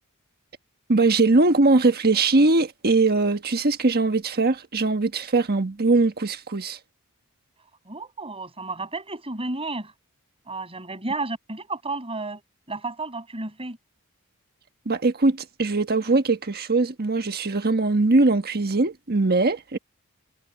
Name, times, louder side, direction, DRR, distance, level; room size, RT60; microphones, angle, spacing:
voice 1, 0.9-6.8 14.8-19.8, right 3 dB, 45° right, 1.4 m, -21 dB
voice 2, 7.8-9.9 10.5-12.4 12.7-13.8, right 3 dB, 25° right, 6.8 m, -32 dB
head